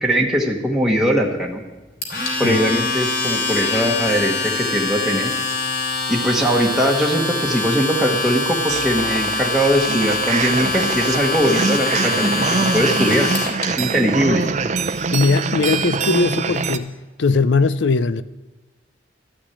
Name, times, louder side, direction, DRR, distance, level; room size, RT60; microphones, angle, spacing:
voice 1, 0.0-1.6 2.4-5.3 6.1-13.3 13.7-14.4, equal, ahead, 1.2 m, -20 dB
Domestic sounds home sounds, 2.0-13.6, left 3 dB, 60° left, 3.6 m, -24 dB
sound 1, 8.7-16.8, right 4 dB, 40° right, 0.6 m, -24 dB
voice 2, 15.1-16.9 17.2-18.2, left 3 dB, 90° left, 0.5 m, -19 dB
13.0 x 6.1 x 9.7 m
head